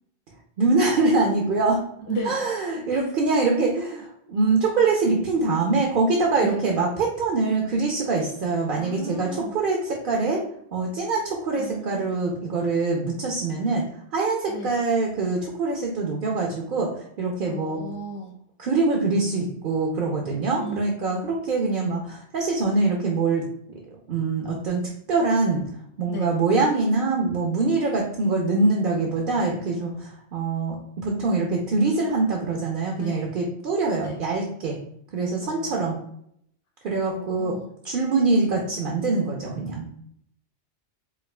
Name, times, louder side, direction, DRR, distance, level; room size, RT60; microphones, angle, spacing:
voice 1, 0.6-1.8 2.3-10.4 10.7-13.8 14.1-17.8 18.6-23.4 24.1-24.8 25.1-25.6 26.0-30.8 31.0-34.8 35.1-36.0 36.8-37.5 37.8-39.9, right 3 dB, 55° right, 0 dB, 0.7 m, -24 dB
voice 2, 2.1-2.4 2.9-3.1 6.4-6.7 8.8-9.6 11.5-12.2 14.5-14.8 17.5-18.4 20.6-20.8 26.1-26.3 33.0-33.3 34.0-34.2 35.4-36.1 37.0-37.7, right 2 dB, 30° left, 0 dB, 0.7 m, -35 dB
4.7 x 2.4 x 2.2 m, 0.70 s
omnidirectional pair, 1.2 m